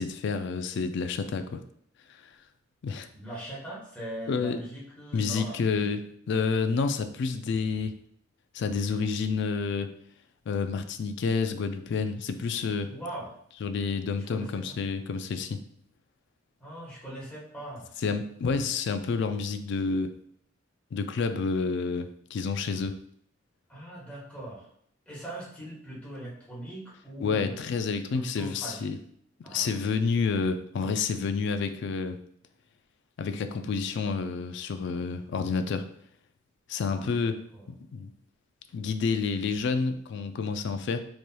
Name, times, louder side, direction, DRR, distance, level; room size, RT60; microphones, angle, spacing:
voice 1, 0.0-1.6 2.2-2.3 2.8-3.1 4.3-4.6 5.1-7.9 8.5-9.9 10.5-12.9 13.6-15.6 18.0-20.1 20.9-23.0 27.2-29.0 29.5-32.2 33.2-35.9 36.7-37.4 37.9-38.1 38.7-41.0, left 5 dB, 60° left, 9 dB, 0.3 m, -29 dB
voice 2, 3.1-6.0 12.9-13.3 14.2-14.8 16.6-17.9 23.7-24.7 25.1-27.8 28.1-28.9 29.4-29.8 36.9-37.7, right 1 dB, 5° left, -7 dB, 1.3 m, -41 dB
4.1 x 3.2 x 2.2 m, 0.66 s
head